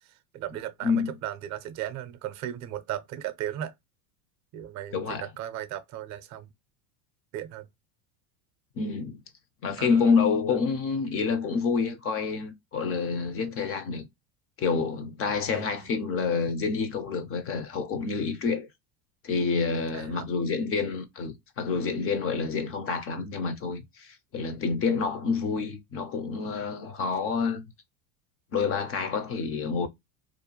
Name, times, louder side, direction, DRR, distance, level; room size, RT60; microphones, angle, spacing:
voice 1, 0.0-3.7 4.5-6.5 7.3-7.7 9.8-10.1 10.5-10.6 15.5-15.9 19.9-20.3, right 11 dB, 40° right, 0.5 m, -37 dB
voice 2, 4.9-5.3 8.8-9.2 9.6-14.1 14.6-18.7 19.2-27.7 28.5-29.9, left 5 dB, 30° left, 0.4 m, -28 dB
2.5 x 2.2 x 2.8 m
supercardioid pair, 115°, 47 cm